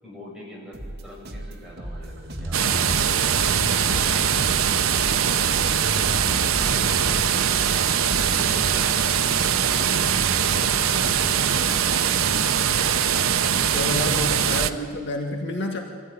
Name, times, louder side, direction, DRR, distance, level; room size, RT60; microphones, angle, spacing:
voice 1, 0.0-4.9 5.6-7.7 8.2-10.0 10.5-12.2, equal, 5° right, -4 dB, 6.3 m, -42 dB
sound 1, 0.7-9.1, right 1 dB, 55° right, 2.1 m, -38 dB
sound 2, 1.9-7.9, equal, 70° right, 3.8 m, -35 dB
sound 3, 2.5-14.7, right 8 dB, 90° right, 0.9 m, -22 dB
voice 2, 13.7-15.8, left 2 dB, 55° left, 2 dB, 2.0 m, -29 dB
24.0 x 15.5 x 9.8 m, 2.1 s
head